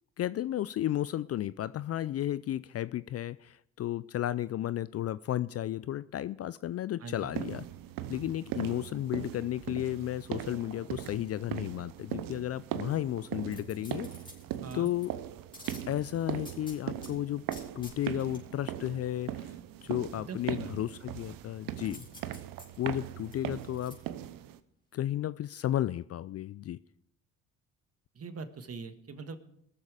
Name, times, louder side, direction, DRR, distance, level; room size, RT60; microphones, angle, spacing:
voice 1, 0.2-7.7 8.1-14.1 14.7-15.1 15.9-17.4 17.8-19.5 19.8-22.1 22.8-24.0 24.9-26.8, left 12 dB, 45° left, 17 dB, 0.4 m, -33 dB
voice 2, 7.0-7.3 14.6-14.9 20.1-20.7 28.1-29.4, right 4 dB, 40° right, 9 dB, 1.5 m, -42 dB
sound 1, 7.3-24.6, right 12 dB, 65° right, 0.8 m, -40 dB
sound 2, 13.5-15.1 15.5-17.1 17.5-18.4 21.9-23.9 24.4-24.5, left 1 dB, 15° left, 4.2 m, -50 dB
20.5 x 7.2 x 4.9 m, 0.71 s
hypercardioid pair, 60°, 37 cm